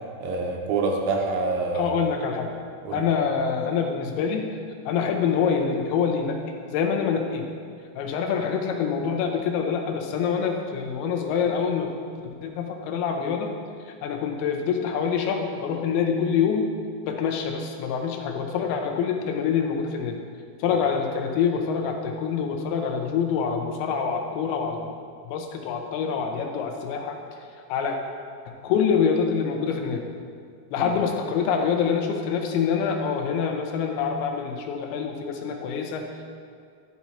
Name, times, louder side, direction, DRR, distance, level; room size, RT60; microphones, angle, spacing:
voice 1, 0.2-1.9 2.8-3.0 30.8-30.9, right 3 dB, 75° right, 1 dB, 2.3 m, -26 dB
voice 2, 1.7-2.5 2.9-4.5 4.9-6.4 6.7-7.5 8.0-11.9 12.2-13.5 14.0-16.6 17.1-20.2 20.6-24.8 25.2-27.2 27.7-28.0 28.5-30.0 30.7-36.2, left 6 dB, 80° left, 3 dB, 2.6 m, -25 dB
11.5 x 5.9 x 4.2 m, 2.2 s
omnidirectional pair, 4.7 m